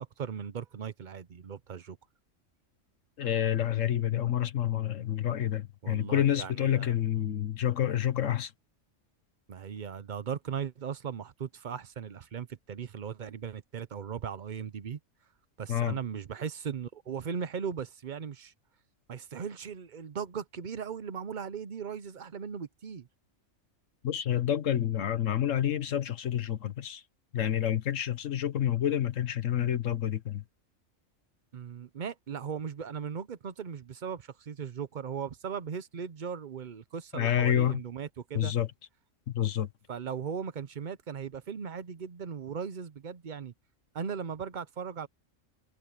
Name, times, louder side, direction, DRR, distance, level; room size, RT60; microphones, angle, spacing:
voice 1, 0.0-2.0 5.8-7.0 9.5-15.0 15.6-18.5 19.1-23.1 31.5-38.5 39.9-43.5 43.9-45.1, right 7 dB, 45° right, 0.8 m, -38 dB
voice 2, 3.2-8.5 15.7-16.0 24.0-27.0 27.3-30.4 37.1-37.8 38.3-38.7 39.3-39.7, left 11 dB, 70° left, 1.4 m, -28 dB
omnidirectional pair, 1.4 m